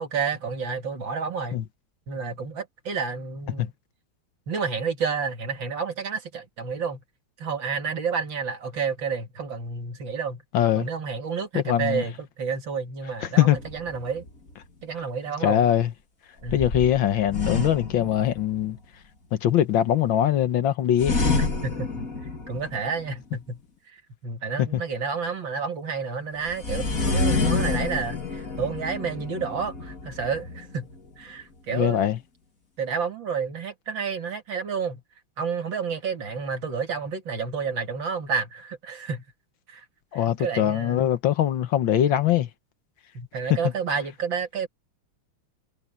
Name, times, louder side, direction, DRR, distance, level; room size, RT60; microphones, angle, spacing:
voice 1, 0.0-1.6 2.1-3.7 4.5-7.0 7.4-10.4 10.8-14.2 14.8-15.6 16.4-16.7 21.4-21.9 22.5-23.6 24.2-30.9 31.2-32.0 32.8-35.0 35.4-39.2 39.7-39.8 40.1-41.1 43.1-44.7, right 5 dB, 60° right, 2.9 m, -30 dB
voice 2, 10.5-10.9 11.5-12.0 13.4-13.6 15.4-15.9 16.5-18.8 19.3-21.1 24.6-24.8 31.7-32.2 40.1-42.5 43.5-43.6, left 11 dB, 70° left, 1.7 m, -22 dB
sound 1, 13.6-14.5 16.5-18.8 21.0-23.1 26.5-31.1, left 3 dB, 40° left, 3.0 m, -28 dB
omnidirectional pair, 2.4 m